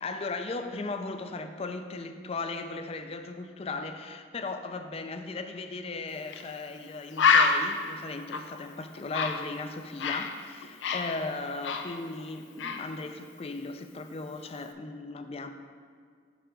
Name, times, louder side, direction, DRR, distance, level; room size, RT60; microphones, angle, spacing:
voice 1, 0.0-15.5, left 3 dB, 35° left, 8 dB, 0.4 m, -37 dB
Bird, 6.3-6.5 6.8-6.9 7.2-10.3 10.6-12.3 12.6-12.9, left 5 dB, 85° left, 0.5 m, -27 dB
9.1 x 3.4 x 5.0 m, 2.1 s
head